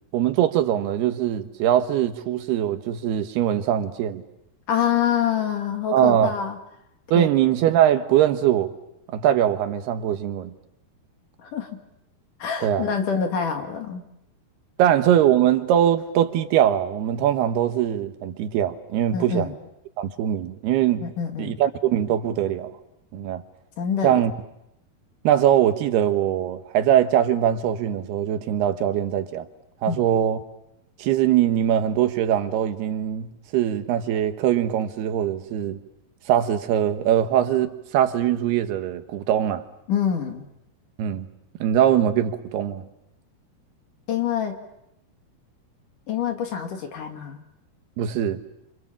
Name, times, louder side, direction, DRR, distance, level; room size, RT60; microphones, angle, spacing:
voice 1, 0.1-4.2 5.9-6.3 7.1-8.7 9.1-10.5 12.6-12.9 14.8-19.5 20.0-21.0 21.4-22.7 23.1-23.4 24.0-24.3 25.2-29.5 29.8-30.4 31.0-35.8 36.3-39.6 41.0-41.3 41.6-42.8 48.0-48.4, right 10 dB, 85° right, 3.3 m, -22 dB
voice 2, 4.7-6.6 7.1-7.3 11.4-11.7 12.4-14.0 19.1-19.5 21.0-21.6 23.8-24.2 29.9-30.0 39.9-40.5 44.1-44.6 46.1-47.4, left 8 dB, 60° left, 3.5 m, -26 dB
29.0 x 26.5 x 7.4 m
omnidirectional pair, 4.5 m